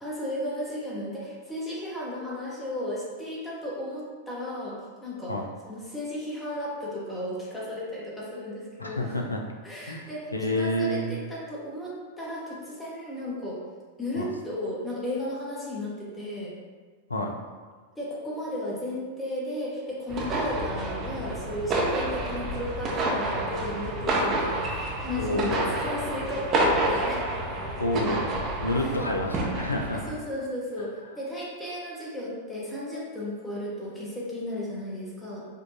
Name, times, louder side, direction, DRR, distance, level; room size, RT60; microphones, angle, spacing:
voice 1, 0.0-9.2 9.6-13.6 14.0-16.5 18.0-27.2 28.7-29.0 29.9-35.5, left 1 dB, 10° left, -6 dB, 0.8 m, -34 dB
voice 2, 8.8-9.4 9.9-10.0 10.3-11.1 14.2-14.3 17.1-17.3 25.2-25.8 27.8-30.0, left 1 dB, 80° left, 2 dB, 0.4 m, -29 dB
tennis-in-dome-far, 20.1-30.1, right 1 dB, 30° right, 0.6 m, -29 dB
5.0 x 2.2 x 2.6 m, 1.5 s
figure-of-eight pair, 95°, 0 cm